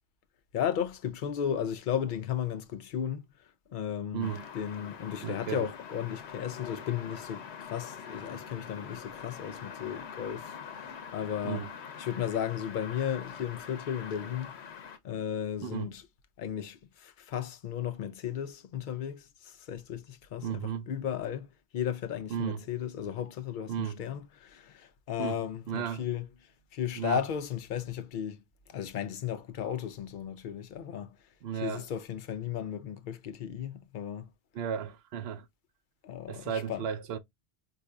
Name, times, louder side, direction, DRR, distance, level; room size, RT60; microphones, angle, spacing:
voice 1, 0.5-3.2 3.7-11.6 12.0-14.5 15.0-16.0 16.4-26.3 26.7-28.4 28.7-31.2 31.6-34.3 36.0-36.9, left 9 dB, 60° left, 0.6 m, -35 dB
voice 2, 4.1-4.5 5.2-5.7 11.4-11.7 15.6-15.9 20.4-20.9 22.3-22.6 23.7-24.0 25.2-26.0 26.9-27.2 31.4-31.8 34.5-35.5 36.3-37.2, right 8 dB, 70° right, 0.8 m, -34 dB
sound 1, 4.2-15.0, left 7 dB, 80° left, 0.9 m, -44 dB
4.7 x 2.6 x 2.2 m
omnidirectional pair, 1.1 m